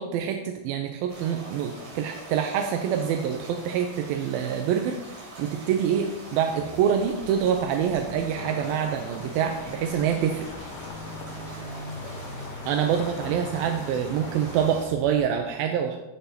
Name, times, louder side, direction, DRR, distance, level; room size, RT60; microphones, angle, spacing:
voice 1, 0.0-5.0 5.4-10.5 12.7-16.0, right 8 dB, 80° right, 4 dB, 2.2 m, -26 dB
sound 1, 1.1-14.9, right 1 dB, 55° right, 4.6 m, -43 dB
sound 2, 6.5-15.3, left 1 dB, 45° left, 1.9 m, -43 dB
sound 3, 8.4-14.7, left 6 dB, 80° left, 2.9 m, -42 dB
16.0 x 5.7 x 2.8 m, 0.93 s
omnidirectional pair, 4.8 m